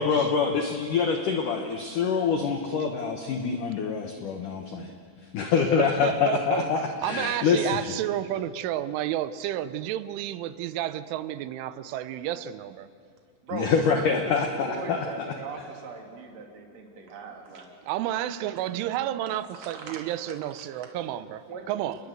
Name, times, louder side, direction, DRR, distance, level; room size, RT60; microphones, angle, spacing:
voice 1, 0.0-4.9 5.3-7.9 13.5-15.1, left 6 dB, 75° left, 1.9 m, -25 dB
voice 2, 5.8-12.9 17.9-22.0, right 12 dB, 80° right, 3.2 m, -31 dB
voice 3, 13.4-17.7 19.6-20.0 21.5-21.6, right 4 dB, 40° right, 3.3 m, -39 dB
28.5 x 21.0 x 7.9 m
omnidirectional pair, 5.6 m